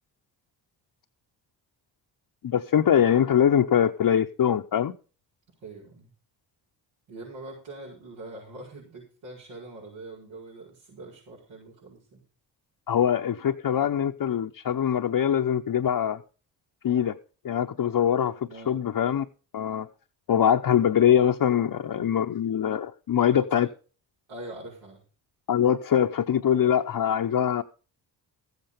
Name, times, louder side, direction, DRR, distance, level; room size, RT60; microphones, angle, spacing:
voice 1, 2.4-4.9 12.9-16.2 16.8-17.1 17.4-19.3 19.5-19.9 20.3-23.7 25.5-27.6, left 9 dB, 50° left, 0.9 m, -23 dB
voice 2, 5.6-6.1 7.1-12.2 18.5-18.8 23.2-23.7 24.3-25.0, right 2 dB, 80° right, 5.6 m, -43 dB
14.0 x 8.1 x 5.1 m
supercardioid pair, 60°, 47 cm